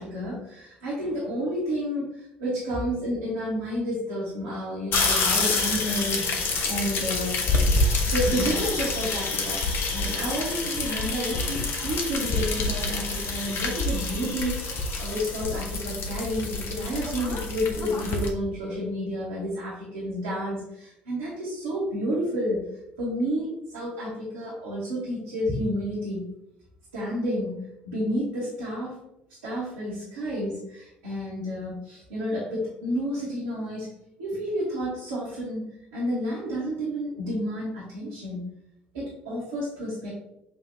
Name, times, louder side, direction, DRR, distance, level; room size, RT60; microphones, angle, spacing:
voice 1, 0.0-7.4 8.1-9.6 9.9-22.6 23.0-26.2 26.9-28.9 29.4-33.9 34.2-38.4 38.9-40.1, equal, 75° right, -8 dB, 1.3 m, -30 dB
sound 1, 4.9-18.3, left 3 dB, 50° left, 0.7 m, -27 dB
6.6 x 2.6 x 2.7 m, 0.85 s
figure-of-eight pair, 55°, 5 cm